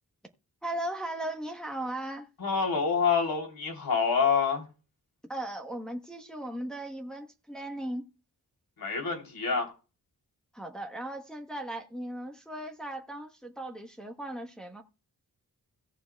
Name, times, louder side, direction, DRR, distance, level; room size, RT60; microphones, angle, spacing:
voice 1, 0.6-2.3 5.3-8.1 10.5-14.8, right 1 dB, ahead, 1.1 m, -37 dB
voice 2, 2.4-4.7 8.8-9.7, left 6 dB, 70° left, 3.5 m, -27 dB
17.5 x 7.0 x 2.3 m
wide cardioid pair, 165°, 37 cm